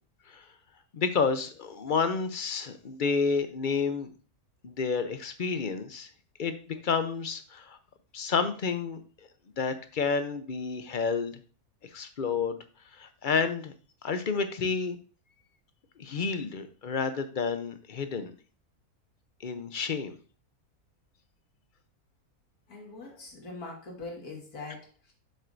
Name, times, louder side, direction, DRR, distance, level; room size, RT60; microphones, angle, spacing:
voice 1, 0.9-4.1 4.6-6.1 6.4-7.8 8.1-9.0 9.6-11.4 11.9-12.6 12.9-13.7 14.0-15.0 16.0-18.3 19.4-20.2, left 5 dB, 50° left, 9 dB, 0.6 m, -30 dB
voice 2, 22.7-25.1, left 3 dB, 90° left, 0 dB, 2.3 m, -42 dB
7.7 x 6.8 x 2.6 m, 0.37 s
omnidirectional pair, 1.5 m